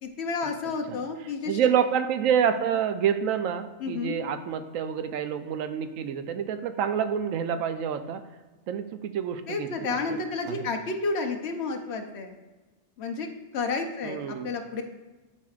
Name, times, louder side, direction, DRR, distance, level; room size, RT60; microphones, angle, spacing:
voice 1, 0.0-1.6 3.8-4.2 9.5-12.3 13.0-13.3 13.5-14.8, left 4 dB, 60° left, 4 dB, 0.9 m, -31 dB
voice 2, 1.5-8.2 8.7-10.2 10.5-10.6 14.0-14.5, right 8 dB, 90° right, 9 dB, 1.0 m, -27 dB
11.0 x 4.5 x 2.4 m, 1.2 s
omnidirectional pair, 1.3 m